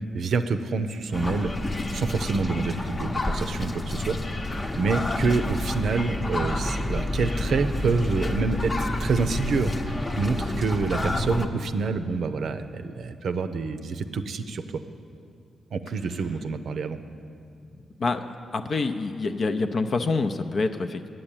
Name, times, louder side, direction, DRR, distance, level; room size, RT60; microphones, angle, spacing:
voice 1, 0.1-1.5 1.9-4.2 4.8-14.6 15.7-17.0, right 4 dB, 70° right, 9 dB, 0.5 m, -27 dB
sound 1, 1.1-11.4, left 1 dB, 35° left, 0.8 m, -29 dB
voice 2, 18.0-21.1, left 3 dB, 55° left, 7 dB, 0.5 m, -27 dB
8.6 x 7.7 x 8.9 m, 2.4 s
supercardioid pair, 55°, 0 cm